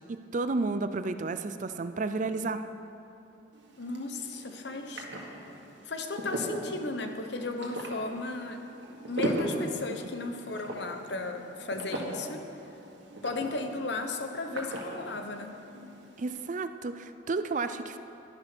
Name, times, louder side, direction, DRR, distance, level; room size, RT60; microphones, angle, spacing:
voice 1, 0.1-2.6 16.2-18.0, right 3 dB, 40° right, 11 dB, 0.4 m, -32 dB
sound 1, 3.5-16.4, right 1 dB, 65° right, 1.9 m, -39 dB
voice 2, 3.8-5.1 5.8-8.6 9.1-12.5 13.2-15.5, left 3 dB, 60° left, 6 dB, 1.0 m, -35 dB
12.0 x 10.5 x 6.1 m, 2.8 s
head